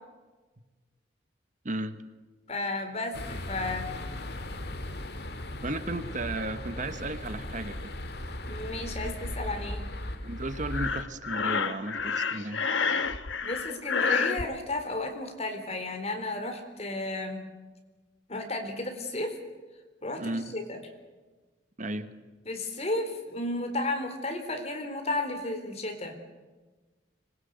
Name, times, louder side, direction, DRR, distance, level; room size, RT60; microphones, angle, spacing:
voice 1, 1.6-2.0 5.6-7.9 10.2-12.6 20.2-20.5 21.8-22.1, right 2 dB, 40° right, 10 dB, 1.3 m, -34 dB
voice 2, 2.5-4.0 8.5-9.9 13.4-17.5 18.3-19.4 20.0-20.8 22.5-26.2, left 2 dB, 35° left, 5 dB, 4.0 m, -33 dB
sound 1, 3.1-11.0, left 1 dB, 60° left, 2.1 m, -37 dB
Breathing, 10.7-14.4, left 5 dB, 85° left, 1.3 m, -29 dB
25.0 x 22.0 x 8.2 m, 1.3 s
head